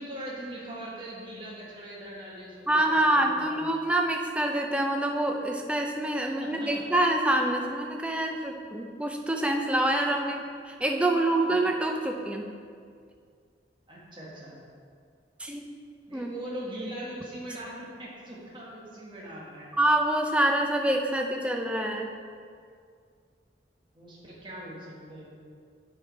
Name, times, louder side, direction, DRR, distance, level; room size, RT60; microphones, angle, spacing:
voice 1, 0.0-3.7 6.2-6.8 13.9-14.5 16.1-19.7 23.9-25.4, right 1 dB, 25° right, -5 dB, 1.4 m, -41 dB
voice 2, 2.7-12.5 15.4-15.6 16.1-16.3 19.7-22.1, right 1 dB, 5° right, 2 dB, 0.5 m, -26 dB
7.5 x 4.8 x 4.5 m, 2.2 s
head